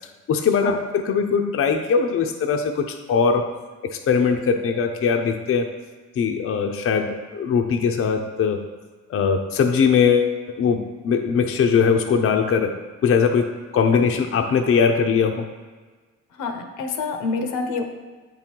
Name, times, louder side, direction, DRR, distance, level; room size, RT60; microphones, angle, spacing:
voice 1, 0.3-3.5 3.9-5.7 6.2-8.6 9.1-12.7 13.0-15.5, left 6 dB, 50° left, 4 dB, 0.6 m, -20 dB
voice 2, 16.4-17.8, left 4 dB, 85° left, 5 dB, 0.9 m, -27 dB
8.1 x 3.8 x 4.5 m, 1.4 s
cardioid pair, 90°, 30 cm